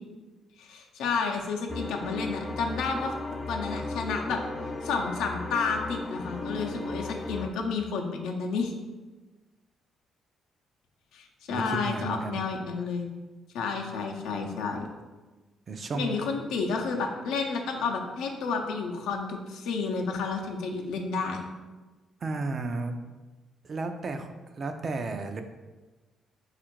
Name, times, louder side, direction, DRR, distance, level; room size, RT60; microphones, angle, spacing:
voice 1, 0.6-3.1 3.5-4.4 4.8-8.7 11.1-13.1 13.5-14.9 15.9-21.4, left 4 dB, 90° left, 2 dB, 0.5 m, -31 dB
sound 1, 1.7-7.5, left 2 dB, 25° left, 0.4 m, -36 dB
voice 2, 11.5-12.5 15.7-16.3 22.2-23.0 23.6-24.3 24.6-25.4, right 3 dB, 45° right, 7 dB, 0.4 m, -33 dB
4.2 x 2.5 x 4.5 m, 1.2 s
cardioid pair, 90°, 0 cm